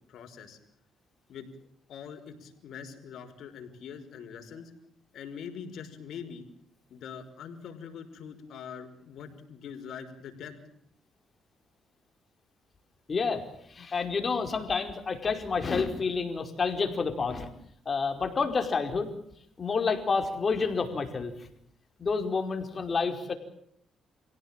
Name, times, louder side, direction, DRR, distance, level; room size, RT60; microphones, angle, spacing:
voice 1, 0.1-0.6 1.3-1.5 1.9-4.7 5.1-6.4 6.9-10.6, left 7 dB, 70° left, 6 dB, 5.4 m, -43 dB
voice 2, 13.1-17.5 17.8-19.1 19.6-21.3 22.0-23.3, left 4 dB, 40° left, 6 dB, 4.9 m, -29 dB
28.5 x 17.5 x 9.1 m, 0.70 s
cardioid pair, 90°, 0 cm